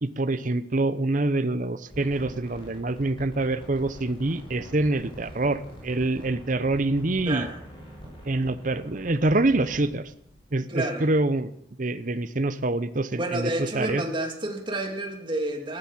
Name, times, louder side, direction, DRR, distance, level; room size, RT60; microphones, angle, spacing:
voice 1, 0.0-7.5 8.2-10.0 10.5-11.5 11.8-14.0, right 2 dB, 45° right, 13 dB, 0.8 m, -26 dB
sound 1, 1.8-10.4, equal, 25° left, 6.5 m, -45 dB
voice 2, 7.3-7.6 10.7-11.1 13.1-15.8, right 1 dB, 25° right, 3 dB, 2.4 m, -30 dB
14.5 x 12.0 x 7.3 m, 0.76 s
head